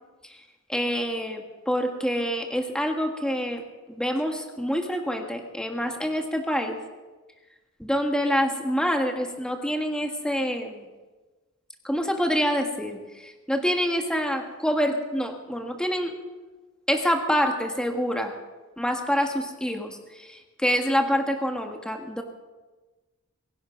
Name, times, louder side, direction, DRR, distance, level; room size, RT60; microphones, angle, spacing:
voice 1, 0.7-3.6 4.0-6.8 7.8-10.8 11.8-16.1 16.9-18.3 18.8-22.2, equal, 5° left, 3 dB, 1.5 m, -26 dB
23.0 x 11.0 x 5.2 m, 1.2 s
head